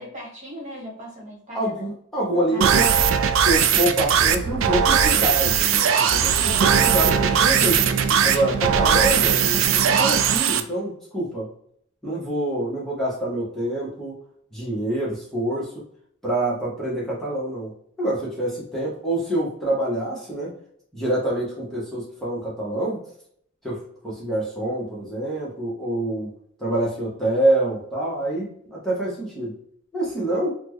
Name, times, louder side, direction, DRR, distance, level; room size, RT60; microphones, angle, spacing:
voice 1, 0.0-1.9 2.3-3.4 6.4-7.0 7.3-7.4, equal, 35° right, -2 dB, 1.2 m, -38 dB
voice 2, 1.5-2.9 3.4-7.8 8.2-11.5 12.0-14.1 14.5-15.8 16.2-17.7 18.0-20.5 20.9-23.0 23.6-26.3 26.6-29.5 29.9-30.5, right 1 dB, ahead, -7 dB, 0.9 m, -26 dB
sound 1, 2.6-10.6, right 8 dB, 75° right, 0.4 m, -19 dB
4.1 x 2.1 x 3.0 m, 0.66 s
head